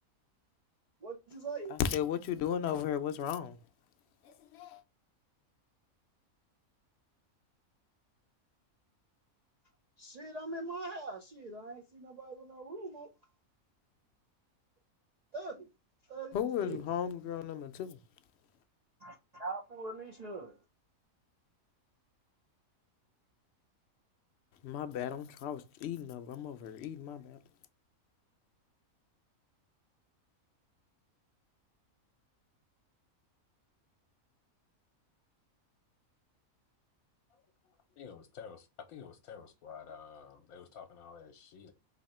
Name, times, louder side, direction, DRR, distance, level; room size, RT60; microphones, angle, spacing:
voice 1, 1.0-1.8 10.0-13.1 15.3-15.7 16.1-16.3 16.6-16.8 19.0-20.5, right 3 dB, 60° right, 0.4 m, -42 dB
voice 2, 1.7-3.6 4.2-4.8 16.3-18.0 24.6-27.4, left 9 dB, 65° left, 0.7 m, -35 dB
voice 3, 37.9-41.7, left 7 dB, 80° left, 1.1 m, -50 dB
4.2 x 2.8 x 4.1 m
omnidirectional pair, 1.5 m